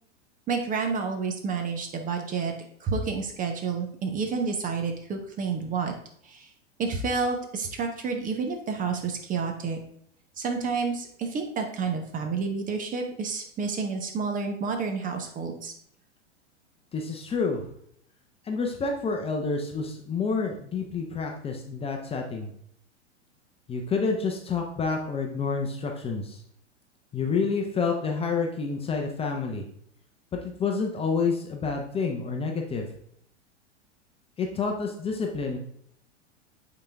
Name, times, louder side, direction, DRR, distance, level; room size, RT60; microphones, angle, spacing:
voice 1, 0.5-2.5 2.8-5.9 6.2-6.5 6.8-9.8 10.4-15.7, right 5 dB, 20° right, 4 dB, 1.0 m, -29 dB
voice 2, 16.9-17.7 18.4-22.5 23.7-26.4 27.1-29.7 30.3-32.9 34.4-35.6, left 4 dB, 15° left, 2 dB, 0.8 m, -28 dB
8.4 x 4.0 x 3.5 m, 0.66 s
figure-of-eight pair, 95°, 36 cm